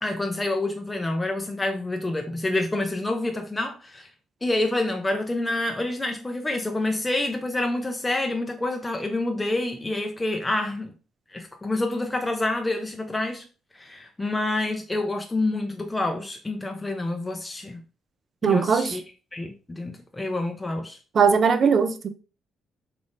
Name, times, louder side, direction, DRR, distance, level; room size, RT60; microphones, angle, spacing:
voice 1, 0.0-4.1 4.4-10.9 11.3-13.4 13.7-17.8 18.4-19.0 19.3-21.0, left 2 dB, 15° left, 0.4 m, -27 dB
voice 2, 18.4-19.0 21.1-22.1, right 6 dB, 50° right, 0.4 m, -19 dB
3.4 x 2.5 x 2.5 m
cardioid pair, 90°, 0 cm